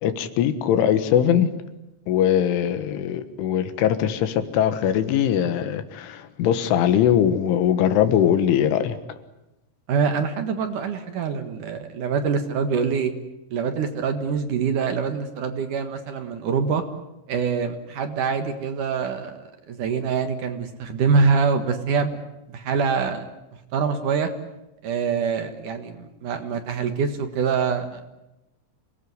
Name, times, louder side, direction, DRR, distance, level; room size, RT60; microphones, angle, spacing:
voice 1, 0.0-1.5 2.1-9.0, left 9 dB, 80° left, 11 dB, 4.0 m, -21 dB
voice 2, 9.9-13.1 13.5-16.8 17.3-22.2 22.5-23.3 23.7-24.3 24.8-28.0, right 5 dB, 60° right, 7 dB, 2.4 m, -24 dB
28.0 x 19.0 x 9.6 m, 0.95 s
omnidirectional pair, 5.5 m